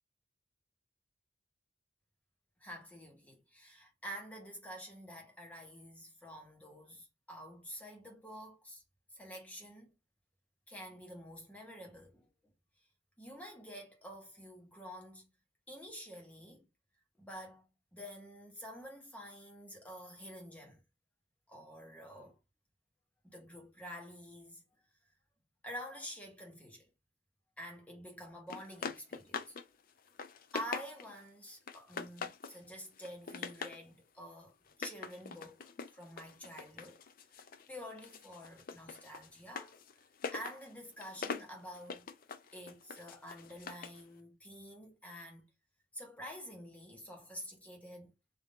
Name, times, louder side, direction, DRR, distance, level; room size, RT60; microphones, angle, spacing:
voice 1, 2.6-8.8 9.1-9.9 10.7-12.3 13.2-15.3 15.7-16.7 17.2-20.8 21.5-22.4 23.2-24.6 25.6-26.9 27.6-29.6 30.5-37.0 37.7-39.7 40.3-42.1 42.5-45.5 45.9-48.1, equal, 10° left, 1.1 m, -48 dB
sound 1, 28.5-29.7 30.0-31.2 31.7-32.6 33.0-33.8 34.7-37.7 38.0-44.0, left 5 dB, 50° left, 0.4 m, -44 dB
3.6 x 2.6 x 3.7 m
head